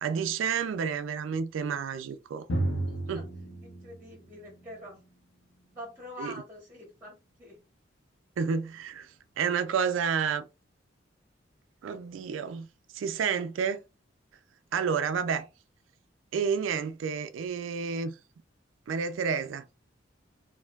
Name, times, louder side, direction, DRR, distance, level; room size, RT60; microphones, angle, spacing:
voice 1, 0.0-2.5 3.1-3.2 6.2-6.3 8.4-10.4 11.8-12.7 12.9-13.8 14.7-15.5 16.3-18.1 18.9-19.6, right 6 dB, 85° right, 0.3 m, -30 dB
Drum, 2.5-6.0, right 1 dB, 80° left, 0.7 m, -34 dB
voice 2, 2.9-3.2 3.6-5.0 5.7-7.6, equal, 10° right, 1.1 m, -45 dB
4.3 x 2.6 x 2.3 m
head